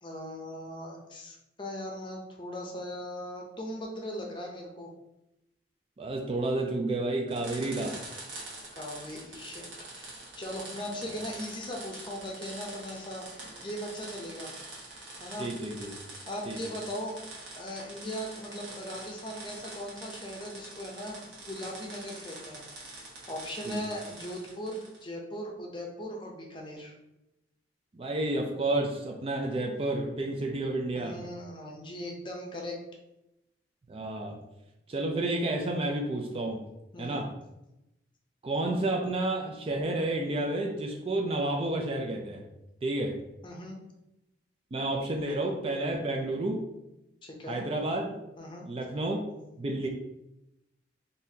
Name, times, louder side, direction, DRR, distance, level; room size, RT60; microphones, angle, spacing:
voice 1, 0.0-4.9 7.9-8.0 8.7-9.6 9.9-14.5 15.2-15.5 16.3-17.1 17.5-21.2 21.5-26.9 30.9-32.8 36.9-37.3 43.4-43.8 47.2-47.6 48.4-48.7, equal, 25° left, 0 dB, 0.6 m, -39 dB
voice 2, 6.0-8.0 15.4-15.9 16.5-16.6 23.7-23.8 27.9-31.2 33.9-34.4 34.9-36.6 37.0-37.3 38.4-42.4 42.8-43.2 44.7-46.6 47.5-48.1 48.7-49.2 49.6-49.9, right 2 dB, 30° right, 2 dB, 0.4 m, -30 dB
sound 1, 7.3-25.0, right 2 dB, 85° right, 1.2 m, -45 dB
3.9 x 2.7 x 2.7 m, 0.90 s
head